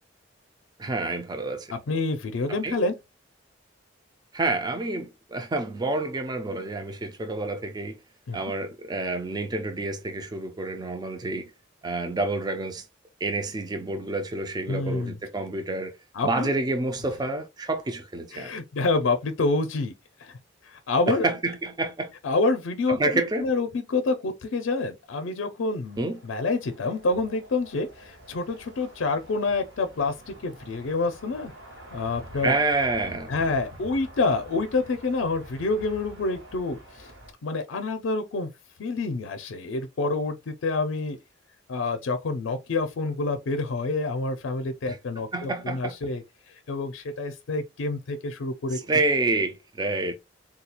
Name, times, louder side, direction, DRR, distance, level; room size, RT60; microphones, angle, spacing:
voice 1, 0.8-1.7 2.5-2.8 4.3-8.0 8.3-11.5 11.8-12.8 13.2-15.9 16.2-18.6 21.1-22.1 22.9-23.5 26.0-26.2 32.3-33.3 44.9-45.0 45.3-46.0 48.7-50.1, right 2 dB, 20° right, 0.4 m, -28 dB
voice 2, 1.7-2.9 8.3-8.4 14.7-15.2 16.1-16.5 18.3-19.9 20.2-20.3 20.7-21.3 22.2-23.1 23.4-26.0 26.2-31.5 31.9-32.5 33.3-37.1 37.4-38.5 38.8-41.2 41.7-46.2 46.7-48.8, left 3 dB, 80° left, 0.5 m, -27 dB
sound 1, 25.8-37.3, right 1 dB, 80° right, 1.5 m, -47 dB
3.7 x 2.3 x 2.8 m
head